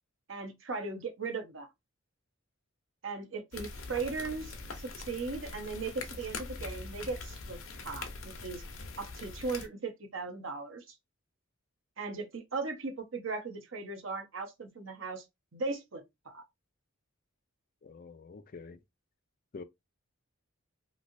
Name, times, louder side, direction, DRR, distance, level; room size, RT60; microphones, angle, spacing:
voice 1, 0.3-1.7 3.0-8.6 9.0-11.0 12.0-15.2 15.5-16.4, right 4 dB, 65° right, 0.8 m, -38 dB
sound 1, 3.5-9.7, left 3 dB, 75° left, 0.8 m, -43 dB
voice 2, 17.8-18.8 19.5-19.6, left 4 dB, 45° left, 0.4 m, -46 dB
3.1 x 2.7 x 2.6 m
head